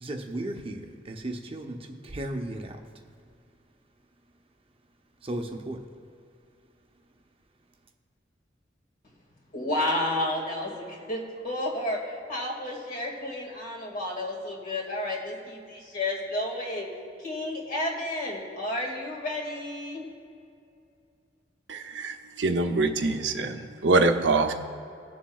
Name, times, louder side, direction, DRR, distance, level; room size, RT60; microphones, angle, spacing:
voice 1, 0.0-2.8 5.2-5.9, right 1 dB, 30° right, 3 dB, 0.7 m, -35 dB
voice 2, 9.5-12.0 12.3-16.9 17.2-20.1, left 1 dB, 50° left, -1 dB, 2.0 m, -31 dB
voice 3, 21.7-24.5, right 3 dB, 90° right, 5 dB, 0.7 m, -24 dB
19.0 x 7.3 x 2.4 m, 2.4 s
head